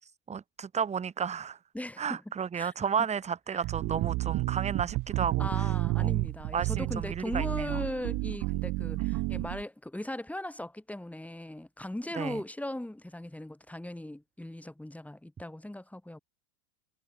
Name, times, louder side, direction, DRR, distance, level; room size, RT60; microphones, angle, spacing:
voice 1, 0.0-1.6 2.0-6.1 6.5-7.8 9.0-9.1 12.1-12.4, right 7 dB, 15° right, 1.4 m, -33 dB
voice 2, 1.7-2.2 2.5-2.7 3.5-3.6 5.4-16.2, left 1 dB, 5° left, 6.7 m, -38 dB
sound 1, 3.6-9.6, right 21 dB, 40° right, 2.0 m, -31 dB
supercardioid pair, 150°, 49 cm